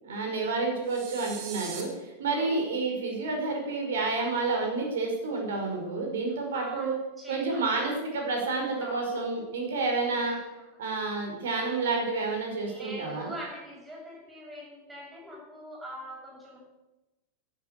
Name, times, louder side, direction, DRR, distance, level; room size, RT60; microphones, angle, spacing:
voice 1, 0.0-6.9 7.3-10.4 10.8-13.3, right 3 dB, 60° right, 1 dB, 5.2 m, -29 dB
sound 1, 0.9-1.8, right 7 dB, 45° right, 3.1 m, -40 dB
voice 2, 2.3-2.7 6.5-7.9 8.8-9.2 10.3-10.6 12.6-16.6, equal, 5° right, -4 dB, 7.5 m, -43 dB
12.5 x 11.5 x 8.4 m, 1.1 s
figure-of-eight pair, 90°, 0 cm